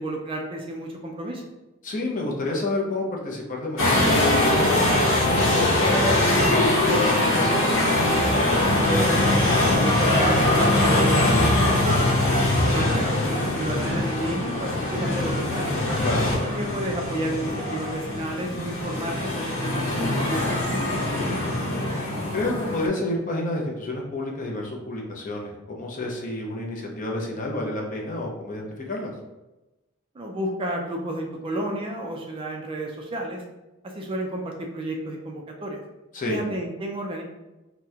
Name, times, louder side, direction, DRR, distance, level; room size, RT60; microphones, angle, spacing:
voice 1, 0.0-1.4 8.5-12.2 12.6-15.7 16.4-20.9 21.3-21.7 30.1-33.4 33.8-35.8 36.2-37.2, right 1 dB, 25° right, 1 dB, 0.3 m, -32 dB
voice 2, 1.8-7.5 16.0-16.3 22.3-29.1 36.1-36.4, left 2 dB, 40° left, -1 dB, 0.6 m, -30 dB
sound 1, 3.8-22.9, left 1 dB, 85° left, 0.9 m, -22 dB
2.9 x 2.1 x 3.5 m, 1.0 s
head